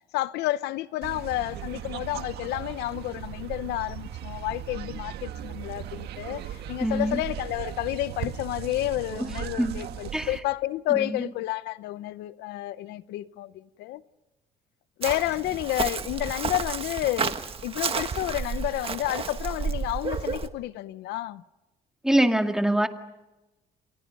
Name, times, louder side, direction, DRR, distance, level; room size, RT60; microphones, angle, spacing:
voice 1, 0.1-14.0 15.0-21.4, left 15 dB, 85° left, 0.8 m, -30 dB
sound 1, 1.0-10.4, right 11 dB, 75° right, 1.7 m, -37 dB
voice 2, 6.8-7.2 9.2-9.8 10.1-10.4 10.9-11.2 22.0-22.9, right 1 dB, 5° right, 2.1 m, -25 dB
Chirp tweet, 15.0-20.5, right 6 dB, 35° right, 1.6 m, -31 dB
30.0 x 26.5 x 5.4 m
cardioid pair, 110°, 17 cm